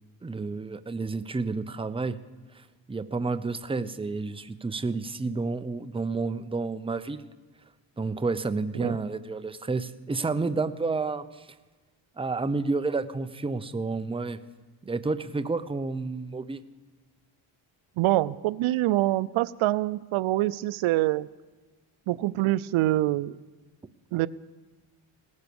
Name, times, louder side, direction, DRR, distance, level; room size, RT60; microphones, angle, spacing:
voice 1, 0.2-2.2 2.9-7.3 8.0-11.5 12.2-14.4 14.9-16.6, right 3 dB, 10° right, 11 dB, 0.6 m, -30 dB
voice 2, 18.0-21.3 22.1-23.4 24.1-24.3, right 16 dB, 85° right, 18 dB, 0.6 m, -25 dB
18.0 x 11.0 x 7.0 m, 1.2 s
cardioid pair, 95°, 48 cm